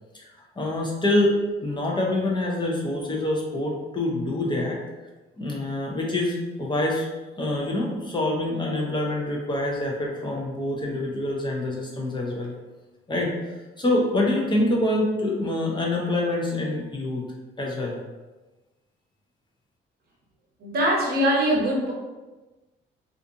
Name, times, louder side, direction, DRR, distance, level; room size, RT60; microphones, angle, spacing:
voice 1, 0.6-1.3 1.6-4.8 5.4-7.1 7.4-12.5 13.1-13.3 13.8-17.2 17.6-18.0, left 1 dB, 25° left, -2 dB, 0.5 m, -26 dB
voice 2, 20.6-21.9, equal, 50° right, -3 dB, 0.9 m, -22 dB
2.4 x 2.4 x 2.7 m, 1.2 s
cardioid pair, 90°, 20 cm